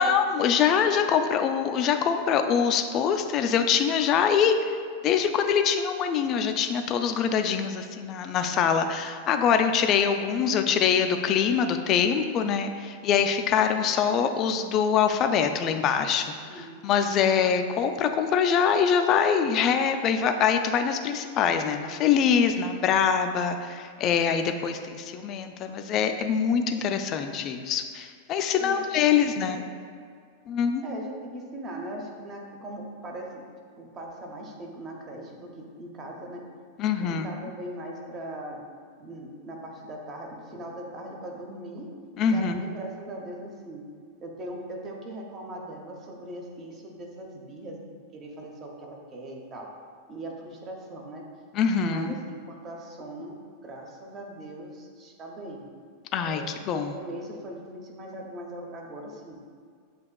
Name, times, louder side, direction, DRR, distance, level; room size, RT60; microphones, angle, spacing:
voice 1, 0.0-4.8 5.0-16.3 16.5-29.6 30.5-30.8 36.8-37.5 42.2-42.6 51.5-52.1 56.1-56.9, left 7 dB, 35° left, 7 dB, 0.3 m, -24 dB
voice 2, 16.4-16.8 28.6-29.7 30.8-33.3 33.8-36.4 37.0-38.6 39.0-41.9 42.3-43.8 44.2-47.8 48.1-49.7 50.1-51.2 51.9-55.7 56.3-59.4, right 1 dB, 30° right, 0 dB, 0.7 m, -40 dB
7.7 x 2.9 x 2.2 m, 2.1 s
figure-of-eight pair, 90°, 0 cm